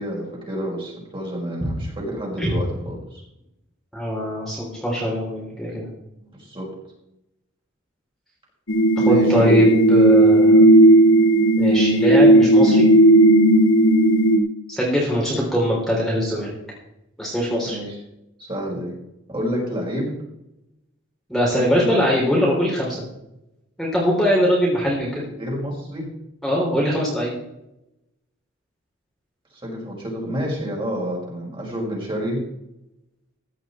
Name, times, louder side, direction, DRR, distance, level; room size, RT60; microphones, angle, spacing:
voice 1, 0.0-3.2 6.2-6.7 9.0-9.7 17.6-18.0 18.4-19.0 19.3-20.1 21.5-22.1 25.4-26.1 29.5-32.4, equal, 25° right, -2 dB, 5.3 m, -29 dB
voice 2, 3.9-5.9 9.1-10.7 11.6-12.9 14.7-16.5 17.2-17.8 21.3-23.0 23.8-25.2 26.4-27.3, equal, ahead, -5 dB, 3.6 m, -22 dB
sound 1, 8.7-14.4, right 1 dB, 90° left, 2.1 m, -14 dB
15.5 x 10.5 x 4.4 m, 0.87 s
head